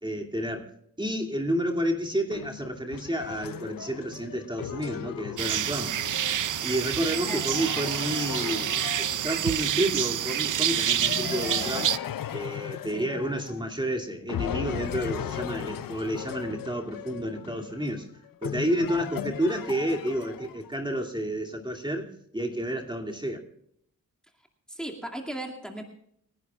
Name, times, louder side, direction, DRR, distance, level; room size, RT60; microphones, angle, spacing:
voice 1, 0.0-0.7 1.0-6.0 6.6-11.9 12.3-18.1 18.4-23.4, right 1 dB, 15° right, 2 dB, 2.6 m, -30 dB
sound 1, 2.3-9.7 11.0-13.9 14.3-20.8, left 10 dB, 80° left, 0.6 m, -37 dB
sound 2, 5.4-12.0, right 10 dB, 65° right, 0.5 m, -28 dB
voice 2, 24.7-25.8, right 1 dB, ahead, 0 dB, 2.4 m, -37 dB
29.0 x 11.0 x 2.4 m, 0.69 s
cardioid pair, 60°, 33 cm